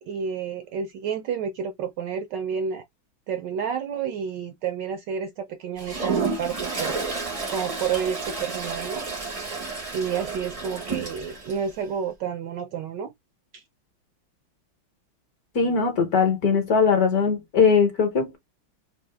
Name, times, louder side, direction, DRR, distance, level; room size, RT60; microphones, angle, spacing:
voice 1, 0.0-2.8 3.3-7.0 7.5-9.0 9.9-13.1 13.5-13.6, right 7 dB, 75° right, 1.0 m, -30 dB
Toilet flush, 5.8-11.6, right 4 dB, 55° right, 0.4 m, -31 dB
voice 2, 15.5-18.4, left 5 dB, 55° left, 1.2 m, -20 dB
3.6 x 2.7 x 3.2 m
omnidirectional pair, 2.4 m